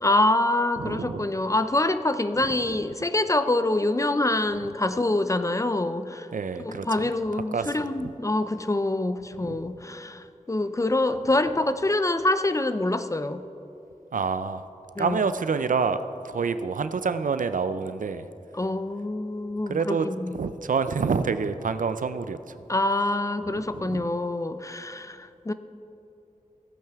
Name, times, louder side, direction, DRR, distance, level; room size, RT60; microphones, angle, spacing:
voice 1, 0.0-6.3 6.6-13.4 15.0-15.2 18.5-20.4 22.7-25.5, left 2 dB, 25° left, 11 dB, 0.4 m, -25 dB
voice 2, 0.8-1.3 6.3-7.1 7.5-8.1 9.5-9.6 14.1-14.6 15.0-18.2 19.7-20.1 20.3-22.4 23.9-24.1, right 5 dB, 80° right, 11 dB, 0.4 m, -27 dB
16.0 x 8.8 x 3.5 m, 2.7 s
wide cardioid pair, 80°, 13 cm